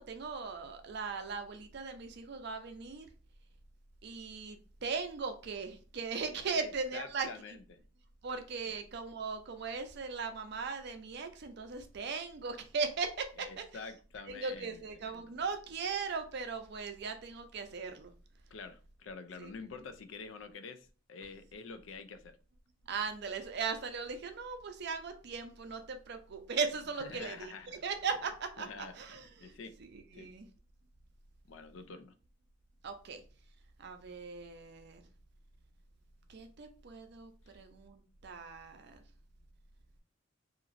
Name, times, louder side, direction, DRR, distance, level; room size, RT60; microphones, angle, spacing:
voice 1, 0.0-3.1 4.0-7.6 8.2-13.6 14.3-18.1 19.4-19.5 22.9-27.5 27.8-30.5 32.8-33.2 33.8-35.0 36.3-39.0, right 5 dB, 60° right, 0.5 m, -38 dB
voice 2, 6.5-7.8 8.7-8.8 13.4-14.8 18.5-22.4 27.0-27.8 28.6-29.7 30.1-30.3 31.5-32.1, left 4 dB, 70° left, 0.4 m, -47 dB
2.9 x 2.5 x 2.5 m
head